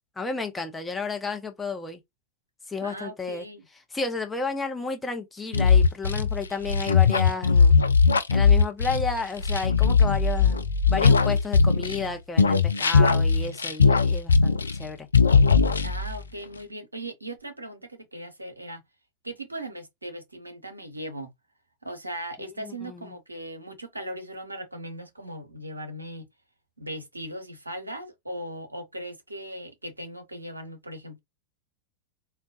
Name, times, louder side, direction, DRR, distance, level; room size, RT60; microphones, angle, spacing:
voice 1, 0.2-2.0 2.7-3.5 3.9-7.8 8.3-10.6 10.9-15.1 22.6-23.2, left 4 dB, 10° left, 0.7 m, -32 dB
voice 2, 2.8-3.6 15.8-18.8 19.2-21.3 21.8-26.3 26.8-31.2, right 1 dB, 85° right, 0.7 m, -38 dB
sound 1, 5.5-12.1 12.4-14.9 15.1-16.2, left 5 dB, 75° left, 0.3 m, -19 dB
3.8 x 2.3 x 2.4 m
figure-of-eight pair, 90°, 0 cm